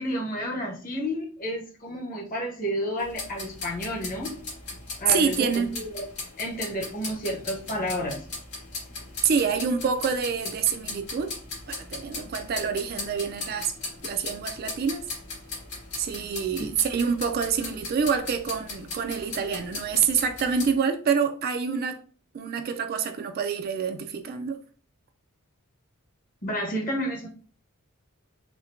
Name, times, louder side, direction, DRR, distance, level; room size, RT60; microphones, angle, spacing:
voice 1, 0.0-4.4 5.0-6.1 6.4-8.2 16.6-16.7 26.4-27.3, equal, 40° left, 1.0 m, -31 dB
sound 1, 3.0-20.7, left 3 dB, 75° left, 1.4 m, -38 dB
voice 2, 5.1-5.8 9.2-11.3 11.7-13.7 14.0-15.0 16.0-22.0 22.3-24.6, right 6 dB, 45° right, 0.3 m, -26 dB
4.2 x 2.1 x 2.5 m
head